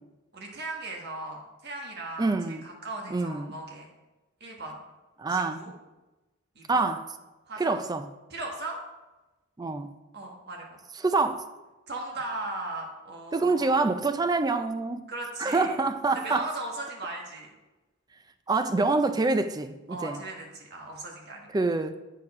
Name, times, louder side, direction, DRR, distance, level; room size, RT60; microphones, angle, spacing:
voice 1, 0.3-3.9 4.4-4.8 5.3-5.7 6.5-6.9 7.5-7.8 8.3-8.8 10.1-10.8 11.9-13.8 15.1-15.8 16.2-17.5 19.9-21.5, right 2 dB, 50° right, 1.4 m, -37 dB
voice 2, 2.2-2.6 3.1-3.6 5.2-5.7 6.7-7.0 7.6-8.1 9.6-9.9 11.0-11.5 13.3-15.0 15.4-16.5 18.5-20.2 21.5-22.0, right 3 dB, 20° right, 0.3 m, -26 dB
8.2 x 4.4 x 4.8 m
head